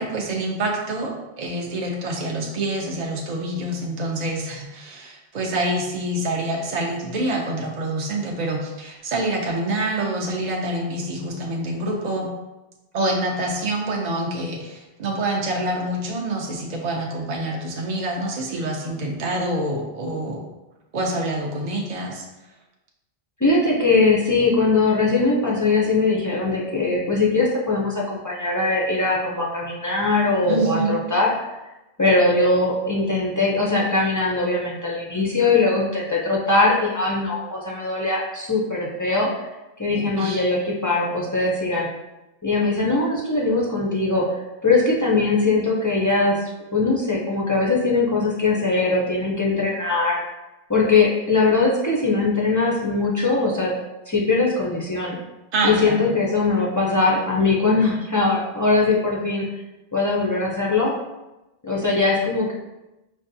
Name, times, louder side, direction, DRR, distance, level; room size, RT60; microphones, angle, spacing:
voice 1, 0.0-12.3 12.9-20.5 20.9-22.3 30.4-31.0 40.0-40.4 55.5-56.0, right 1 dB, 55° right, 0 dB, 0.5 m, -26 dB
voice 2, 23.4-31.3 32.0-39.5 39.8-41.9 42.4-46.4 46.7-50.2 50.7-53.7 54.1-55.2 55.6-59.4 59.9-60.9 61.6-62.5, left 3 dB, 30° left, -4 dB, 0.3 m, -21 dB
5.1 x 2.2 x 2.6 m, 1.0 s
omnidirectional pair, 1.1 m